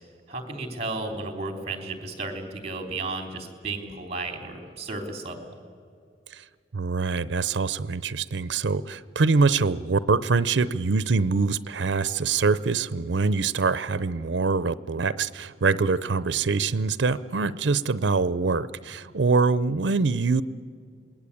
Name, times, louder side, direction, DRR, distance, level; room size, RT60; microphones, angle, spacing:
voice 1, 0.3-5.6, right 3 dB, 35° right, 5 dB, 3.2 m, -33 dB
voice 2, 6.7-20.4, right 4 dB, 80° right, 16 dB, 0.6 m, -24 dB
27.5 x 20.0 x 8.5 m, 2.2 s
head